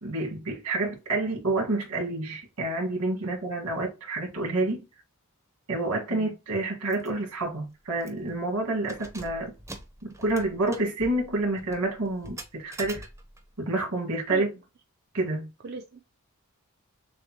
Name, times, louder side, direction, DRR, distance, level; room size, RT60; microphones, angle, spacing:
voice 1, 0.0-4.8 5.7-9.5 10.0-13.1 13.6-14.5 15.1-15.5, right 2 dB, 85° right, 1.7 m, -28 dB
Keys jangling, 6.9-7.1 7.4-7.5 8.0-8.3 8.8-13.5, right 1 dB, 15° right, 0.7 m, -44 dB
voice 2, 15.6-16.0, right 4 dB, 45° right, 0.5 m, -37 dB
6.5 x 2.2 x 2.9 m
head